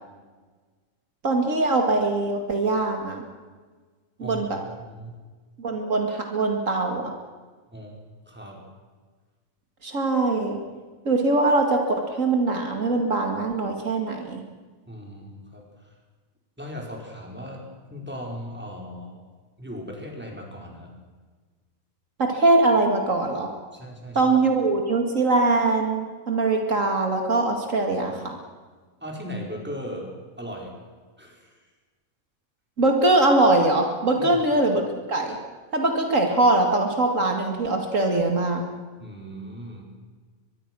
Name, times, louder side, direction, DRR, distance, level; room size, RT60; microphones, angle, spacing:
voice 1, 1.2-3.2 4.2-4.6 5.6-7.1 9.8-10.6 11.1-14.4 22.2-23.5 24.1-28.4 32.8-35.4 35.7-38.6, right 2 dB, 65° right, 3 dB, 2.5 m, -22 dB
voice 2, 4.8-5.2 7.7-8.6 14.9-15.9 16.6-19.1 19.6-20.9 23.7-24.3 29.0-30.1 30.4-30.7 31.2-31.6 34.2-34.4 39.0-39.8, equal, 5° right, 0 dB, 4.9 m, -38 dB
23.5 x 22.5 x 6.3 m, 1.4 s
omnidirectional pair, 1.5 m